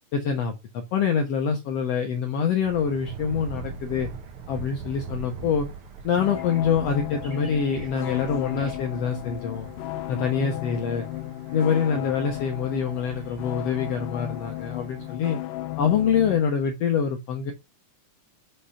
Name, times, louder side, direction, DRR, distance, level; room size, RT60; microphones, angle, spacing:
voice 1, 0.1-4.1 4.5-5.7 6.0-9.7 10.1-11.1 11.5-15.4 15.8-17.5, left 6 dB, 70° left, 4 dB, 1.6 m, -25 dB
Thunder, 2.6-15.2, right 5 dB, 55° right, 1.7 m, -42 dB
sound 1, 5.2-8.8, right 2 dB, 25° right, 3.5 m, -52 dB
sound 2, 6.2-16.4, left 17 dB, 90° left, 2.1 m, -34 dB
5.7 x 5.3 x 5.6 m, 0.24 s
omnidirectional pair, 3.7 m